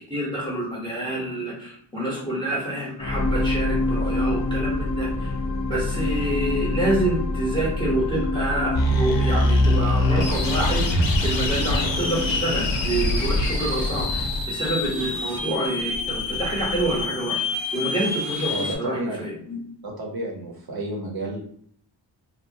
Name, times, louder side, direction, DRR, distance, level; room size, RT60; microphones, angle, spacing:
voice 1, 0.0-5.3 5.7-10.8 11.2-19.6, right 1 dB, 10° left, -4 dB, 0.9 m, -27 dB
sound 1, 3.0-15.4 16.0-16.1, left 2 dB, 40° left, 0.4 m, -28 dB
sound 2, 8.7-18.7, left 1 dB, 75° left, 0.7 m, -24 dB
voice 2, 18.5-19.5 19.8-21.4, right 2 dB, 50° right, 0 dB, 0.8 m, -31 dB
2.9 x 2.1 x 2.6 m, 0.63 s
wide cardioid pair, 80°, 46 cm